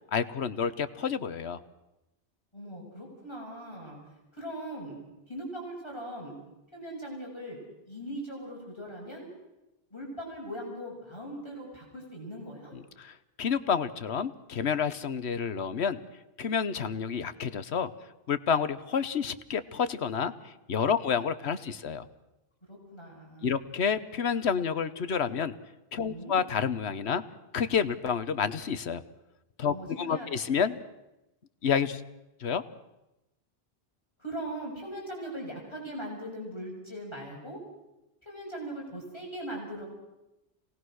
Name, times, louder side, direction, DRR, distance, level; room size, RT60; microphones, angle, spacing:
voice 1, 0.1-1.6 12.7-16.0 16.4-17.9 18.3-22.1 23.4-25.5 25.9-27.2 27.5-29.0 29.6-30.8 31.6-32.0 32.4-32.6, left 6 dB, 85° left, 13 dB, 1.3 m, -29 dB
voice 2, 2.5-4.0 4.3-5.0 5.3-6.4 6.7-7.6 7.9-9.3 9.9-12.7 22.7-23.6 26.0-26.4 29.7-30.4 34.2-37.6 38.2-39.8, right 1 dB, 25° left, -3 dB, 6.5 m, -40 dB
27.0 x 19.0 x 6.3 m, 0.94 s
omnidirectional pair, 1.1 m